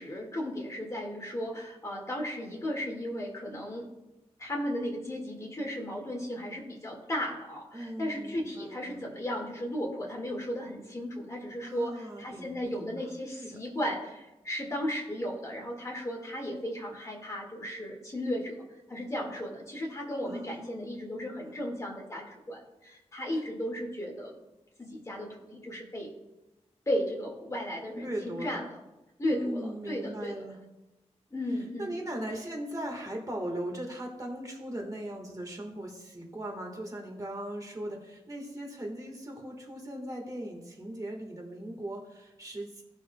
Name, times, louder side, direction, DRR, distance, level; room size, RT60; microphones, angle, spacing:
voice 1, 0.0-3.9 4.4-18.6 18.9-24.3 24.8-26.1 26.9-28.8 29.2-30.4 31.3-31.9, equal, 25° left, -1 dB, 1.9 m, -35 dB
voice 2, 7.7-9.0 11.6-13.0 13.3-13.6 20.2-21.6 23.3-23.4 27.9-28.6 29.3-30.6 31.5-42.8, right 1 dB, 30° right, 1 dB, 1.6 m, -39 dB
17.0 x 6.2 x 2.3 m, 0.99 s
wide cardioid pair, 130°, 12 cm